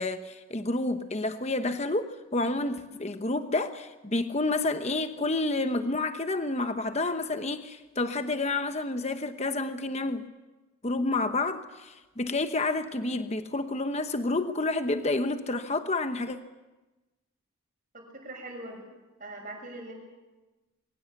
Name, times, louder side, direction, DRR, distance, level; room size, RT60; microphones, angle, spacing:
voice 1, 0.0-10.2 10.8-16.4, left 2 dB, 30° left, 8 dB, 1.0 m, -29 dB
voice 2, 17.9-18.9 19.2-20.0, right 1 dB, 40° right, 2 dB, 6.5 m, -41 dB
23.0 x 18.0 x 8.4 m, 1.1 s
head